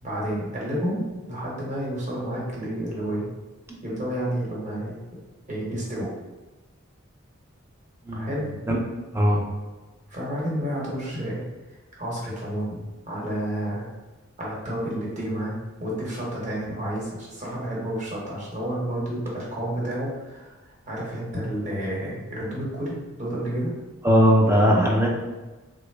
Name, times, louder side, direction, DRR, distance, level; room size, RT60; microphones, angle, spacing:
voice 1, 0.0-3.3 3.8-5.0 5.5-6.1 8.1-8.5 10.1-11.4 12.0-13.9 14.4-15.5 15.8-23.7, right 1 dB, 35° right, -6 dB, 1.0 m, -30 dB
voice 2, 24.0-25.1, equal, 10° right, 0 dB, 0.4 m, -19 dB
3.4 x 2.0 x 3.2 m, 1.2 s
head